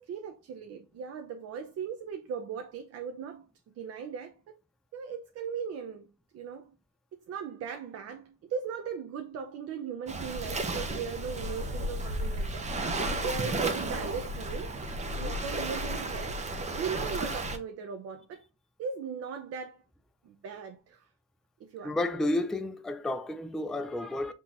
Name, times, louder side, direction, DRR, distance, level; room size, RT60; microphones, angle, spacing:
voice 1, 0.0-3.5 3.8-4.3 4.9-6.1 6.3-6.7 7.3-14.7 15.2-16.4 16.8-18.4 18.8-19.8 20.2-21.1 21.6-22.0, right 6 dB, 45° right, 0.6 m, -38 dB
Waves surf, 10.1-17.6, right 1 dB, 20° right, 0.9 m, -33 dB
voice 2, 21.8-24.3, left 1 dB, ahead, 0.4 m, -31 dB
5.9 x 3.0 x 2.5 m
cardioid pair, 115°, 34 cm